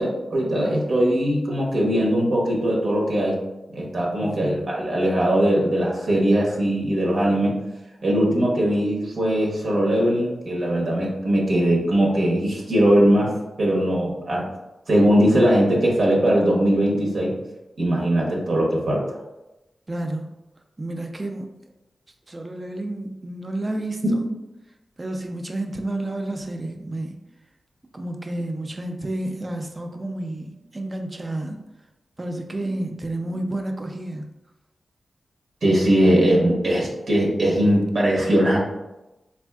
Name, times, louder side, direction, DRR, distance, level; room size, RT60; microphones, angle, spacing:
voice 1, 0.0-3.3 3.7-7.5 8.0-13.3 13.6-14.4 14.9-17.3 17.8-19.2 35.6-38.6, equal, 70° right, -3 dB, 0.7 m, -20 dB
voice 2, 4.2-4.7 19.9-20.3 20.8-21.5 22.3-24.3 25.0-27.2 27.9-31.6 32.2-34.3, right 1 dB, 25° right, 4 dB, 0.4 m, -30 dB
3.5 x 2.4 x 2.2 m, 0.98 s
wide cardioid pair, 85°, 0 cm